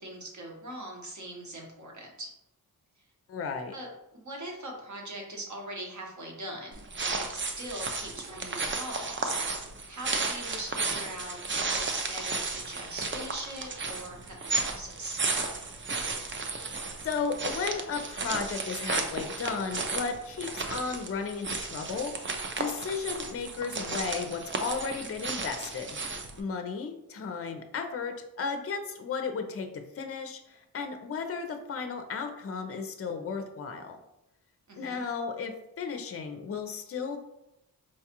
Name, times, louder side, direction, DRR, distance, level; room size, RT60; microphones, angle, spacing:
voice 1, 0.0-2.3 3.7-15.2 34.7-35.0, right 1 dB, 50° right, 0 dB, 1.0 m, -41 dB
voice 2, 3.3-3.7 17.0-26.0 26.4-29.7 29.9-34.0 34.8-37.2, left 5 dB, 40° left, 6 dB, 0.5 m, -34 dB
sound 1, 6.7-26.4, right 3 dB, 35° right, 0.4 m, -34 dB
4.6 x 2.3 x 2.9 m, 0.86 s
wide cardioid pair, 110°, 37 cm